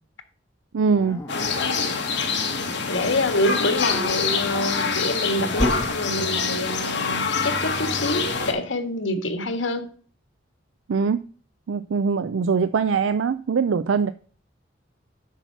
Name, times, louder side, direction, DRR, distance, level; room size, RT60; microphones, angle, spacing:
voice 1, 0.7-1.2 10.9-11.2 11.7-14.1, right 5 dB, 85° right, 0.4 m, -22 dB
Dog, 0.9-2.5 4.1-5.9, left 1 dB, 15° left, 1.3 m, -32 dB
sound 1, 1.3-8.5, left 5 dB, 65° left, 1.9 m, -26 dB
voice 2, 2.9-9.9, left 1 dB, 90° left, 1.6 m, -26 dB
8.1 x 5.9 x 5.6 m
head